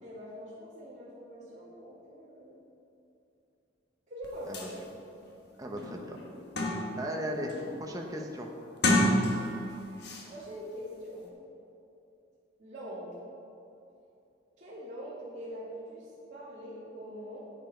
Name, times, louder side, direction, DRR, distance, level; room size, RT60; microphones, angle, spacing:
voice 1, 0.0-2.6 4.1-4.7 10.3-11.3 12.6-13.2 14.6-17.4, equal, 40° right, -9 dB, 2.7 m, -43 dB
sound 1, 4.2-4.3 4.5-4.7 5.3-5.4 5.8-7.1 7.5-7.9 8.7-9.7 10.0-10.2, left 1 dB, 55° left, 1.4 m, -28 dB
voice 2, 5.6-6.2 6.7-7.5 7.8-8.5, equal, 20° right, 1 dB, 1.0 m, -37 dB
10.5 x 9.3 x 4.6 m, 2.8 s
head